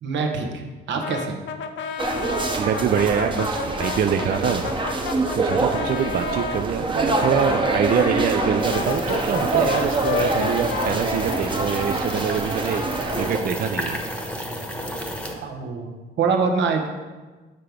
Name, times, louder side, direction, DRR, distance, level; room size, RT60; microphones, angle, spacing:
voice 1, 0.0-1.4 15.4-16.9, right 5 dB, 70° right, 3 dB, 1.0 m, -25 dB
Brass instrument, 1.0-6.6 7.2-11.9, left 6 dB, 70° left, 0.6 m, -31 dB
sound 1, 2.0-13.4, right 3 dB, 25° right, 0.9 m, -25 dB
voice 2, 2.6-4.7 5.3-14.0, right 7 dB, 50° right, 7 dB, 0.4 m, -25 dB
sound 2, 8.6-15.4, equal, 5° left, 1.0 m, -32 dB
6.7 x 4.5 x 5.1 m, 1.3 s
cardioid pair, 90°, 20 cm